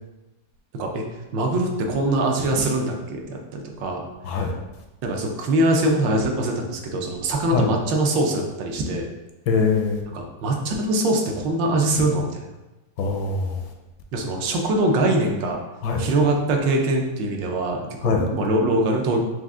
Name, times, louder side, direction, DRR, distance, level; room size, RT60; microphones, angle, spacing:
voice 1, 0.7-1.0 1.3-4.1 4.3-4.4 5.0-9.1 10.1-12.5 14.1-15.6 16.0-19.2, right 1 dB, 80° right, 1 dB, 1.3 m, -23 dB
voice 2, 9.5-10.0 13.0-13.6 15.8-16.0 18.0-18.2, left 4 dB, 75° left, 3 dB, 1.2 m, -22 dB
4.8 x 2.4 x 3.6 m, 1.1 s
omnidirectional pair, 2.0 m